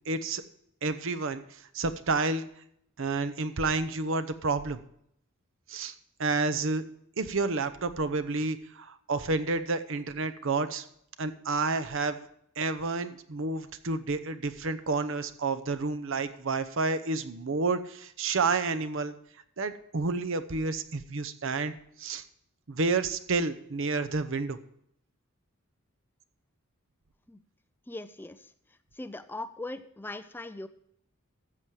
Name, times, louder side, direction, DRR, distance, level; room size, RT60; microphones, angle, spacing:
voice 1, 0.1-0.4 0.8-2.5 3.0-4.8 5.7-5.9 6.2-6.8 7.2-10.8 11.2-12.2 12.6-19.1 19.6-22.2 22.7-24.6, right 3 dB, 65° right, 10 dB, 0.8 m, -30 dB
voice 2, 27.9-28.5 29.0-30.7, left 2 dB, 10° left, 11 dB, 0.4 m, -40 dB
13.5 x 7.4 x 4.8 m, 0.70 s
head